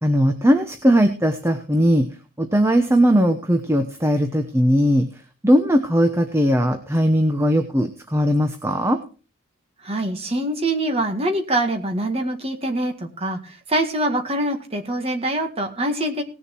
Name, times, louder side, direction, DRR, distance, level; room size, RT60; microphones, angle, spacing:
voice 1, 0.0-2.1 2.4-5.1 5.4-9.0, equal, 10° right, 6 dB, 0.9 m, -19 dB
voice 2, 9.8-16.2, right 1 dB, 25° right, 4 dB, 1.9 m, -24 dB
18.0 x 7.1 x 4.5 m, 0.35 s
head